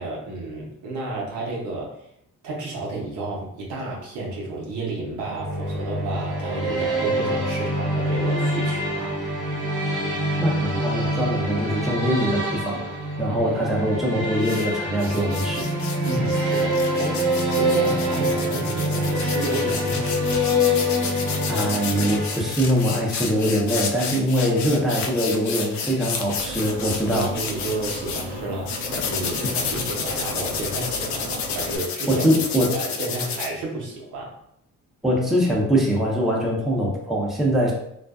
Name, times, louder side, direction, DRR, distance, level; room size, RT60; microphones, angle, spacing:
voice 1, 0.0-2.1 2.4-9.2 13.3-13.6 16.0-20.1 24.4-24.6 27.1-32.3 32.7-34.4, right 2 dB, 90° right, -3 dB, 0.8 m, -31 dB
sound 1, 5.2-23.0, equal, 35° right, 0.9 m, -25 dB
voice 2, 10.4-12.8 13.2-15.7 21.5-27.3 32.1-32.8 35.0-37.7, equal, ahead, -4 dB, 0.7 m, -23 dB
sound 2, 14.4-14.7 15.0-28.2 28.7-33.5, left 5 dB, 70° left, 0.5 m, -31 dB
sound 3, 26.4-31.8, equal, 15° right, 1.1 m, -36 dB
2.5 x 2.1 x 2.3 m, 0.73 s
cardioid pair, 90°, 30 cm